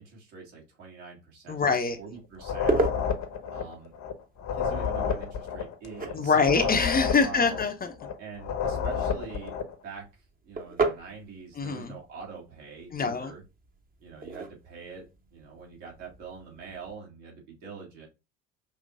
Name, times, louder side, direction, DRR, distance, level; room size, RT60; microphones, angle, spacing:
voice 1, 0.0-2.8 3.5-3.9 4.5-6.5 7.2-7.6 8.2-9.6 9.8-10.1 10.4-13.4 14.0-18.1, right 5 dB, 70° right, 2.1 m, -44 dB
voice 2, 1.5-2.0 6.1-7.9 11.6-11.9 12.9-13.3, left 5 dB, 25° left, 0.7 m, -24 dB
sound 1, 1.8-17.0, right 3 dB, 20° right, 0.9 m, -37 dB
sound 2, 2.4-9.7, left 7 dB, 45° left, 0.9 m, -30 dB
5.4 x 3.0 x 2.5 m
figure-of-eight pair, 60°, 39 cm